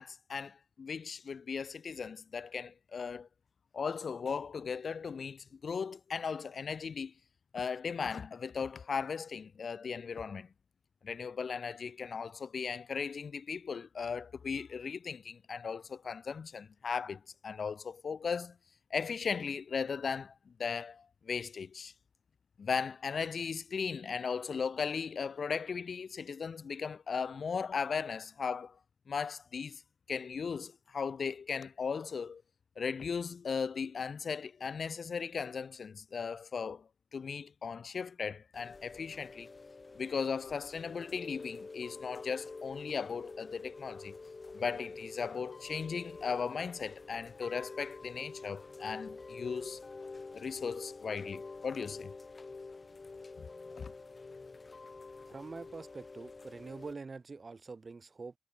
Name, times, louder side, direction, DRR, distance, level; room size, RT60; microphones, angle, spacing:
voice 1, 0.0-3.3 3.7-7.1 7.5-10.5 11.0-18.5 18.9-20.3 20.6-21.9 22.6-28.8 29.1-29.8 30.1-32.4 32.8-39.5 40.0-44.1 44.5-49.8 50.3-52.1 53.7-53.9, left 6 dB, 50° left, 1.5 m, -37 dB
Chime / Rain, 38.5-56.9, left 3 dB, 30° left, 3.6 m, -47 dB
voice 2, 55.3-58.3, right 4 dB, 30° right, 1.3 m, -45 dB
wide cardioid pair, 155°, 0 cm